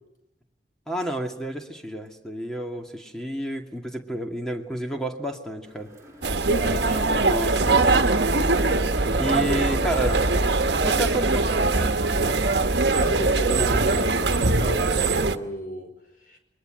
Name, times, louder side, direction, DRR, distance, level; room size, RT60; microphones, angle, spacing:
voice 1, 0.9-5.9 7.2-8.1 9.2-10.2 10.7-12.0, right 1 dB, 5° left, 2 dB, 2.3 m, -30 dB
sound 1, 5.6-11.6, equal, 15° right, 5.8 m, -46 dB
sound 2, 6.2-15.4, right 3 dB, 75° right, 1.3 m, -22 dB
voice 2, 6.4-7.3 12.9-15.9 16.3-16.4, right 1 dB, 50° left, 5 dB, 4.9 m, -34 dB
29.0 x 22.5 x 7.8 m, 0.91 s
head